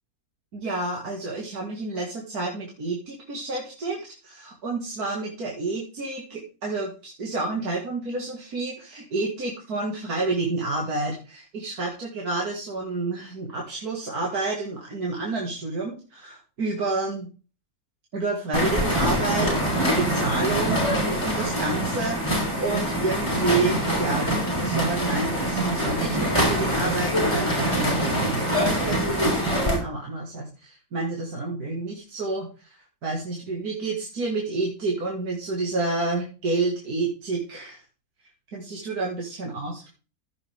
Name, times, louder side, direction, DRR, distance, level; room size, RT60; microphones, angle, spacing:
voice 1, 0.5-17.3 18.1-37.8 38.5-39.9, right 3 dB, 80° right, -1 dB, 2.5 m, -29 dB
sound 1, 18.5-29.8, equal, 20° left, 3.7 m, -24 dB
14.5 x 6.9 x 3.5 m, 0.35 s
omnidirectional pair, 1.6 m